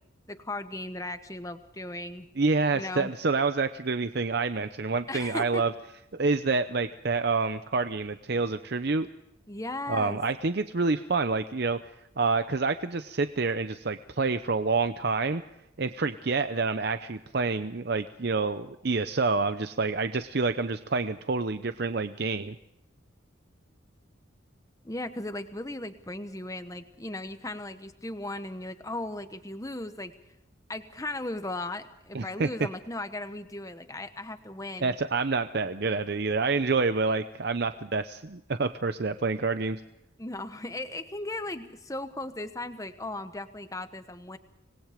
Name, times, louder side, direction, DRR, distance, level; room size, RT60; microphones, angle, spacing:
voice 1, 0.3-2.3 2.7-3.1 5.1-5.7 9.5-10.2 24.8-30.1 30.7-34.9 40.2-44.4, left 2 dB, 15° left, 10 dB, 1.1 m, -37 dB
voice 2, 2.4-5.7 6.1-9.1 9.9-11.8 12.2-15.4 15.8-22.5 32.1-32.5 34.8-39.8, right 4 dB, 50° right, 10 dB, 0.7 m, -27 dB
25.5 x 20.0 x 5.1 m, 0.83 s
head